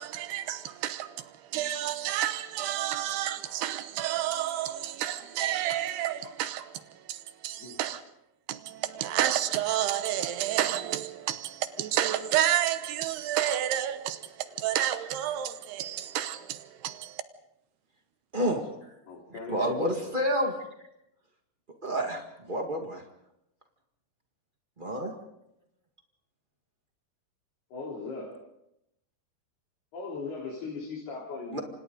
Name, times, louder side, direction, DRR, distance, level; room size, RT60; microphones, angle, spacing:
voice 1, 0.0-8.0 8.5-17.2, right 12 dB, 80° right, 3.0 m, -30 dB
voice 2, 18.3-18.9 19.5-20.6 21.8-23.0 24.8-25.1 31.5-31.6, equal, 65° right, 0.5 m, -29 dB
voice 3, 19.1-20.0 27.7-28.3 29.9-31.6, left 4 dB, 70° left, 5.8 m, -39 dB
29.0 x 26.5 x 3.9 m
omnidirectional pair, 4.6 m